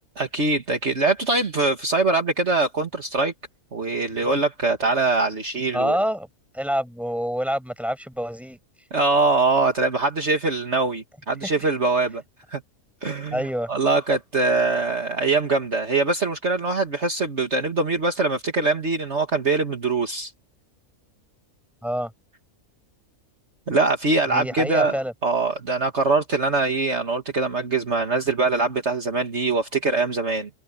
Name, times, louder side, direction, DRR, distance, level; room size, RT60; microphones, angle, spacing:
voice 1, 0.2-3.3 3.7-6.0 8.9-12.2 12.5-12.6 13.0-20.3 23.7-24.9 25.2-30.5, right 3 dB, 50° right, 2.3 m, -23 dB
voice 2, 5.7-6.3 6.5-8.6 11.4-11.5 13.3-13.7 21.8-22.1 24.3-25.1, equal, ahead, 7.4 m, -26 dB
omnidirectional pair, 1.6 m